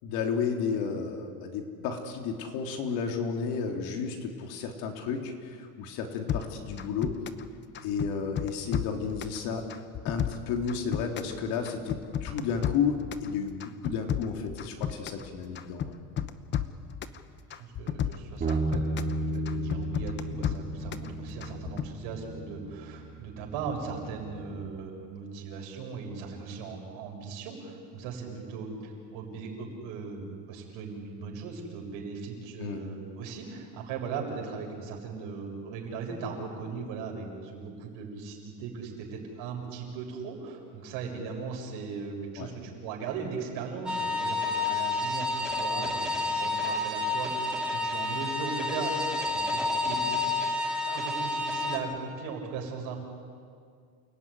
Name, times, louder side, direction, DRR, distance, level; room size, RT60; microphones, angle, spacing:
voice 1, 0.0-7.1 7.8-9.6 10.0-15.9 16.2-16.3 32.6-32.8 42.4-42.5, left 6 dB, 60° left, 3 dB, 3.6 m, -32 dB
sound 1, 6.3-7.5 7.7-9.4 9.7-11.4 11.6-13.3 13.6-15.3 15.6-17.2 17.5-19.2 19.5-21.1 21.4-21.9, left 9 dB, 25° left, 0.9 m, -32 dB
voice 2, 17.2-50.2 50.8-53.0, right 5 dB, 65° right, 1 dB, 6.8 m, -38 dB
Bass guitar, 18.4-24.7, right 1 dB, 20° right, 2.2 m, -34 dB
sound 2, 43.9-51.8, left 3 dB, ahead, 2.7 m, -29 dB
29.0 x 17.5 x 9.8 m, 2.2 s
cardioid pair, 160°, 43 cm